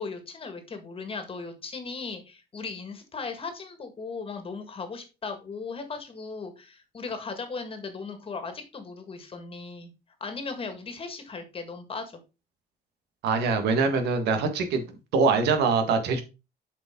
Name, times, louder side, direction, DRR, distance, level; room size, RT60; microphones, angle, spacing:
voice 1, 0.0-9.9 10.2-12.2, left 4 dB, 35° left, 7 dB, 1.8 m, -37 dB
voice 2, 13.2-14.8 15.1-16.2, right 4 dB, 75° right, 6 dB, 1.6 m, -23 dB
7.7 x 5.0 x 3.7 m, 0.29 s
cardioid pair, 110°, 17 cm